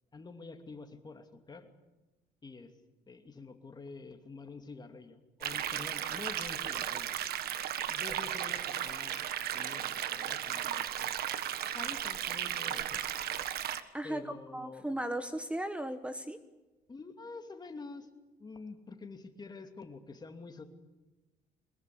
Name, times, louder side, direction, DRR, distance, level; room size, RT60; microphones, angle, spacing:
voice 1, 0.1-1.7 2.4-2.7 3.1-7.1 7.9-11.1 11.7-13.0 14.0-14.9 16.9-18.1 18.4-20.6, left 4 dB, 25° left, 6 dB, 2.7 m, -47 dB
sound 1, 5.4-13.8, right 10 dB, 65° right, 1.5 m, -35 dB
voice 2, 13.9-14.2 14.5-16.4, right 1 dB, 5° right, 10 dB, 1.2 m, -36 dB
23.0 x 20.5 x 8.6 m, 1.1 s
cardioid pair, 110°, 17 cm